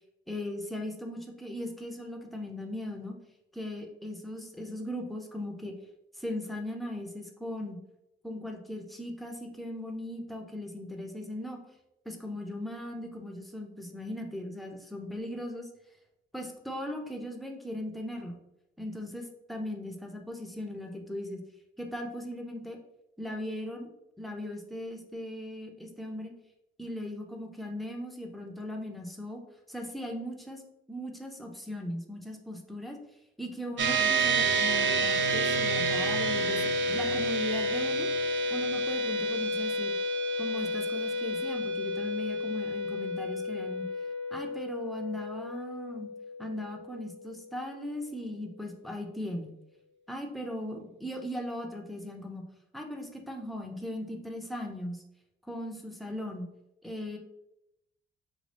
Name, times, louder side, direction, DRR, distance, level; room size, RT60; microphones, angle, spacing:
voice 1, 0.3-3.1 3.5-5.8 6.2-7.8 8.2-11.6 12.1-15.7 16.3-18.4 18.8-21.4 21.8-22.8 23.2-23.9 24.2-26.3 26.8-29.4 29.7-30.6 30.9-33.0 33.4-38.1 38.5-39.9 40.4-43.9 44.3-46.1 46.4-49.5 50.1-52.5 52.7-55.0 55.5-56.5 56.8-57.2, left 1 dB, ahead, 1 dB, 0.7 m, -38 dB
sound 1, 33.8-47.4, right 1 dB, 65° right, 0.7 m, -30 dB
5.3 x 2.3 x 3.3 m, 0.87 s
cardioid pair, 90°, 20 cm